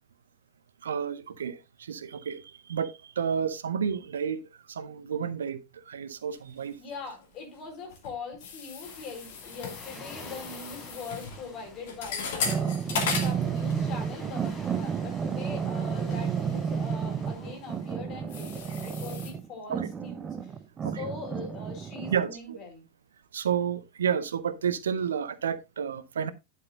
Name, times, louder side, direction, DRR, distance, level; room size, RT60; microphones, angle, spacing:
voice 1, 0.8-6.8 19.7-19.9 20.8-21.0 22.1-22.6 23.3-26.3, right 7 dB, 65° right, 0.7 m, -31 dB
sound 1, 6.3-7.2 7.5-14.2 14.4-14.7 15.3-15.4 15.9-19.3, left 5 dB, 55° left, 2.4 m, -37 dB
voice 2, 6.8-20.5 20.8-22.8, left 4 dB, 35° left, 4.4 m, -42 dB
Waves surf, 8.8-17.9, left 3 dB, 20° left, 4.8 m, -48 dB
sound 2, 12.4-22.2, right 7 dB, 25° right, 0.7 m, -31 dB
11.0 x 7.8 x 2.6 m
figure-of-eight pair, 90°, 0 cm